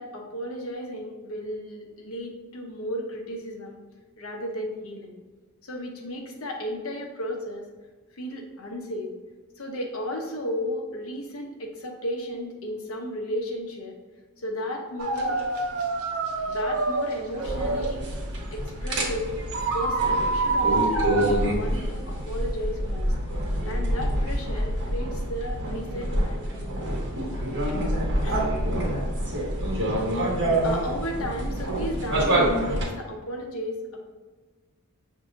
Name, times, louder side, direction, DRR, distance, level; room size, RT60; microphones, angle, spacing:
voice 1, 0.0-3.8 4.2-5.1 5.6-7.7 8.2-9.1 9.6-14.0 14.4-15.5 16.4-18.0 18.5-19.4 19.7-23.1 23.6-26.4 27.6-27.7 28.2-28.5 30.0-30.2 30.6-34.0, equal, 70° left, 1 dB, 0.8 m, -34 dB
sound 1, 15.0-19.2 19.5-21.3, right 3 dB, 70° right, 0.6 m, -27 dB
sound 2, 17.4-32.8, right 1 dB, 55° right, 1.0 m, -27 dB
6.2 x 2.7 x 2.5 m, 1.3 s
head